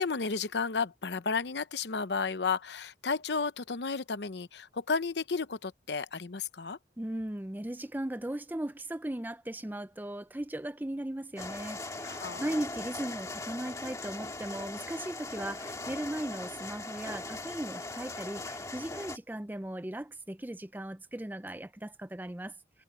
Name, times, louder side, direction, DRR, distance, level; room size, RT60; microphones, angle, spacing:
voice 1, 0.0-6.8 12.0-12.4, left 4 dB, 75° left, 0.8 m, -32 dB
voice 2, 7.0-22.8, right 1 dB, 10° right, 0.5 m, -38 dB
sound 1, 11.4-19.2, left 2 dB, 20° left, 2.1 m, -40 dB
head